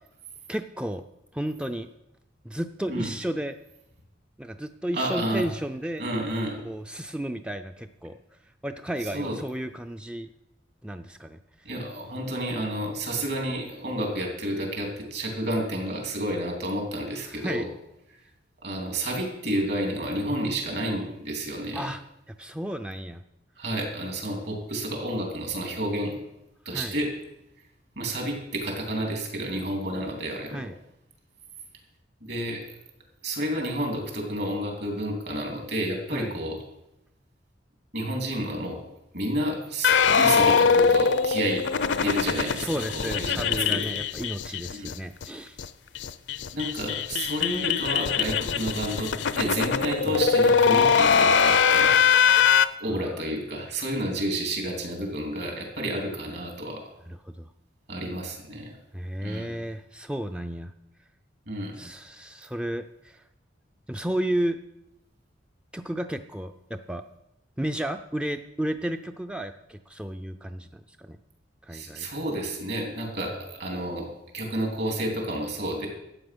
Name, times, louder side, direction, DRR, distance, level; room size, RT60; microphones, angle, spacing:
voice 1, 0.5-1.0 1.3-1.9 2.4-3.6 4.4-6.0 6.6-8.2 8.6-10.3 10.8-11.4 17.3-17.7 21.7-22.0 22.3-23.2 26.7-27.0 30.5-30.7 36.1-36.3 42.5-45.6 50.1-50.2 52.9-53.2 57.1-57.5 58.9-60.7 61.7-63.2 63.9-64.6 65.7-67.0 67.6-71.2 71.6-72.1, right 1 dB, 5° right, 7 dB, 0.4 m, -33 dB
voice 2, 4.9-5.5 6.0-6.6 9.1-9.4 11.7-17.6 18.6-21.9 23.6-26.2 26.7-27.1 28.0-30.7 32.2-32.6 33.2-36.6 37.9-38.8 39.1-41.6 41.9-43.8 44.7-44.9 46.5-49.1 49.4-52.0 52.8-56.8 57.9-58.7 59.2-59.5 61.5-61.8 71.7-74.1 74.3-75.9, right 1 dB, 60° right, 2 dB, 3.4 m, -30 dB
sound 1, 39.8-44.9 45.2-45.3 45.6-45.7 46.0-52.7, left 6 dB, 70° left, 0.6 m, -22 dB
12.5 x 8.6 x 6.2 m, 0.88 s
head